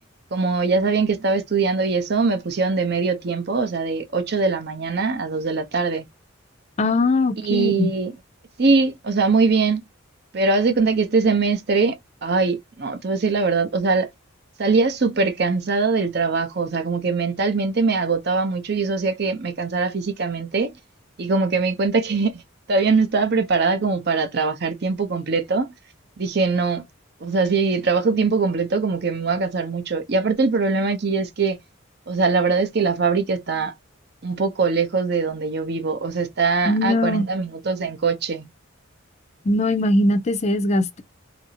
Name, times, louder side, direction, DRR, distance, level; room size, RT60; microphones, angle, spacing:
voice 1, 0.3-6.0 7.4-8.1 8.6-9.8 10.3-14.1 14.6-20.7 21.2-22.4 22.7-25.7 26.2-26.8 27.2-31.6 32.1-33.7 34.2-38.5, right 4 dB, 50° right, 0.6 m, -22 dB
voice 2, 6.8-7.9 36.7-37.3 39.5-41.0, left 2 dB, 30° left, 0.4 m, -20 dB
2.8 x 2.6 x 2.7 m
head